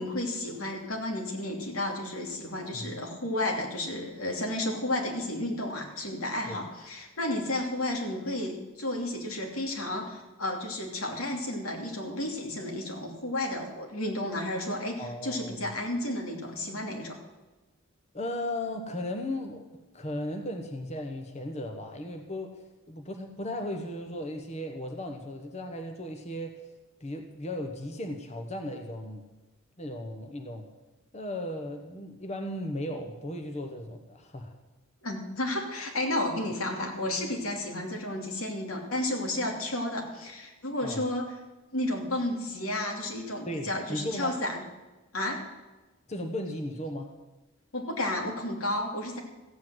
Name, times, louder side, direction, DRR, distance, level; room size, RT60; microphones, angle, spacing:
voice 1, 0.0-17.2 35.0-41.3 41.7-44.6 45.1-45.4 47.7-49.2, left 1 dB, 90° left, 1 dB, 2.9 m, -32 dB
voice 2, 15.0-15.6 18.1-19.7 19.9-26.7 27.0-29.3 29.8-30.7 31.1-34.6 40.8-41.0 43.5-44.4 46.1-47.1, left 1 dB, 30° left, 4 dB, 1.1 m, -36 dB
15.0 x 8.6 x 7.7 m, 1.1 s
head